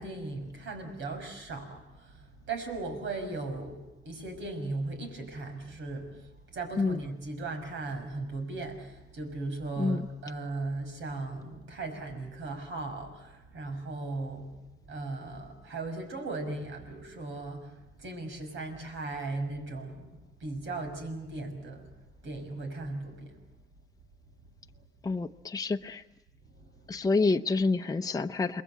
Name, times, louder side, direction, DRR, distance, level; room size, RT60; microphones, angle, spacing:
voice 1, 0.0-14.6 14.9-17.7 18.0-21.9 22.2-23.3 26.4-27.1, right 2 dB, 80° right, 5 dB, 5.8 m, -37 dB
voice 2, 25.0-26.0 26.9-28.6, left 3 dB, 20° left, 5 dB, 0.8 m, -28 dB
28.5 x 21.5 x 7.5 m, 1.0 s
cardioid pair, 90°, 20 cm